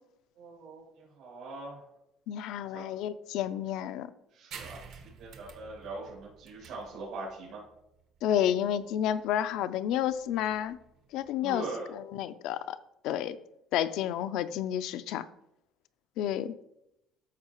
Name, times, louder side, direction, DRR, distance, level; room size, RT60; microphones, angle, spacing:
voice 1, 0.4-1.8 2.7-2.8 4.3-4.8 5.2-7.6 11.4-11.9, right 2 dB, 80° right, 3.3 m, -41 dB
voice 2, 2.3-4.1 8.2-10.8 11.1-12.8 13.0-13.4 13.7-15.3 16.2-16.5, left 10 dB, 70° left, 0.4 m, -30 dB
sound 1, 4.5-11.6, right 6 dB, 60° right, 1.1 m, -51 dB
13.0 x 4.7 x 3.0 m
cardioid pair, 150°, 0 cm